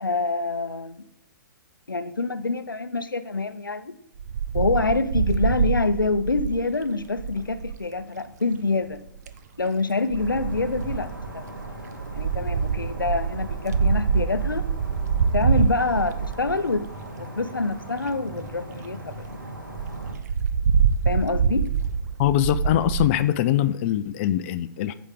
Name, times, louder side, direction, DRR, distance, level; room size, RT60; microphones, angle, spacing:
voice 1, 0.0-1.0 1.9-3.9 4.5-9.0 9.6-11.4 12.1-14.7 15.3-16.9 17.2-19.2 21.1-21.7, left 3 dB, 85° left, 0.6 m, -26 dB
Wind, 4.2-7.8 8.9-9.4 10.1-17.1 17.7-17.8 18.0-18.1 18.4-18.5 18.8-18.9 19.1-19.3 19.7-23.1, right 6 dB, 50° right, 0.7 m, -25 dB
sound 1, 10.2-20.1, right 1 dB, 85° right, 2.8 m, -39 dB
voice 2, 22.2-24.9, left 12 dB, 40° left, 0.4 m, -22 dB
15.0 x 5.0 x 3.6 m
figure-of-eight pair, 115°, 11 cm